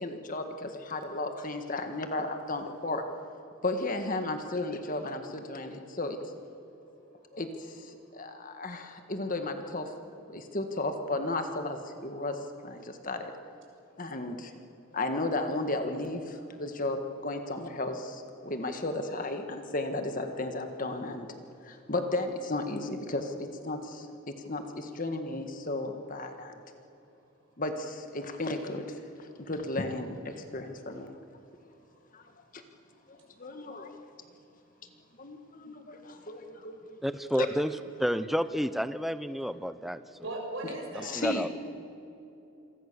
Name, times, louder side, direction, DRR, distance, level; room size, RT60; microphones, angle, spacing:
voice 1, 0.0-3.0 3.6-6.2 7.3-9.9 10.3-13.3 14.0-14.5 14.9-21.3 21.6-24.1 24.5-26.6 27.6-31.2 32.1-32.2 32.5-32.6 33.1-33.9 35.2-37.0 37.2-37.5 41.0-41.5, left 2 dB, 40° left, 6 dB, 1.7 m, -34 dB
voice 2, 37.0-40.0 40.9-41.5, equal, ahead, 12 dB, 0.7 m, -30 dB
voice 3, 40.2-41.3, right 1 dB, 60° right, 0 dB, 6.9 m, -37 dB
27.5 x 23.0 x 7.0 m, 2.9 s
head